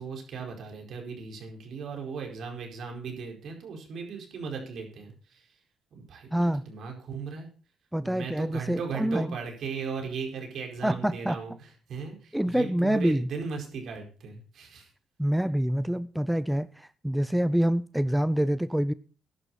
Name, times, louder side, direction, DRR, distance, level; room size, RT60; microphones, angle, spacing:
voice 1, 0.0-5.6 5.9-7.5 8.0-14.9, right 5 dB, 65° right, 2 dB, 4.8 m, -37 dB
voice 2, 6.3-6.6 7.9-9.3 10.8-11.4 12.3-13.3 15.2-18.9, equal, 5° right, 16 dB, 0.6 m, -26 dB
15.0 x 11.0 x 4.2 m, 0.36 s
cardioid pair, 90°, 0 cm